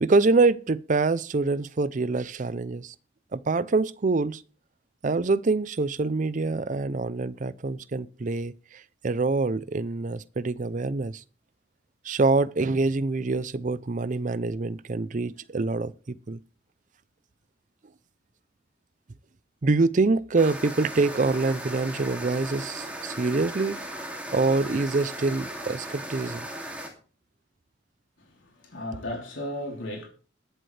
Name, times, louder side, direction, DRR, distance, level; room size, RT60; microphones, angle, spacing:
voice 1, 0.0-2.9 3.3-4.4 5.0-8.5 9.0-11.2 12.0-16.4 19.6-23.8 24.3-26.5, right 3 dB, 40° right, 0.5 m, -25 dB
sound 1, 20.4-26.9, right 1 dB, 5° right, 2.5 m, -37 dB
voice 2, 28.2-30.1, left 1 dB, 80° left, 3.5 m, -35 dB
21.0 x 7.8 x 3.3 m
head